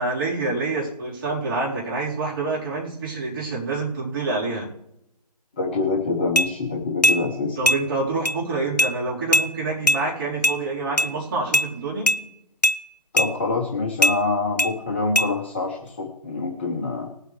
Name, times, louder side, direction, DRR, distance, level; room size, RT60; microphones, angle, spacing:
voice 1, 0.0-4.7 7.6-12.1, right 3 dB, 30° right, -5 dB, 3.9 m, -27 dB
voice 2, 5.6-7.7 13.1-17.1, left 3 dB, 15° left, 0 dB, 0.7 m, -25 dB
sound 1, 6.4-6.5 7.0-7.2 7.7-7.8 8.3-8.4 8.8-8.9 9.3-9.5 9.9-10.0 10.4-10.6 11.0-11.1 11.5-11.7 12.1-12.2 12.6-12.8 13.2-13.3 14.0-14.2 14.6-14.7 15.2-15.3, equal, 85° left, 0.7 m, -19 dB
19.5 x 8.3 x 3.2 m, 0.81 s
figure-of-eight pair, 155°, 21 cm